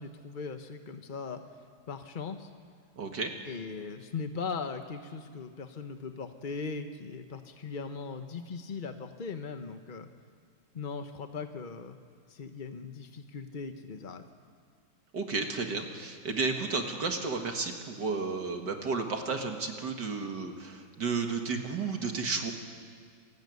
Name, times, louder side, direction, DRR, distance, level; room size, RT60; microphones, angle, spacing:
voice 1, 0.0-1.4 1.9-2.5 3.5-10.1 10.7-12.0 12.3-14.2, left 5 dB, 50° left, 7 dB, 0.6 m, -39 dB
voice 2, 3.0-3.3 15.1-22.5, right 4 dB, 55° right, 4 dB, 2.1 m, -32 dB
26.5 x 15.0 x 9.4 m, 2.1 s
omnidirectional pair, 2.4 m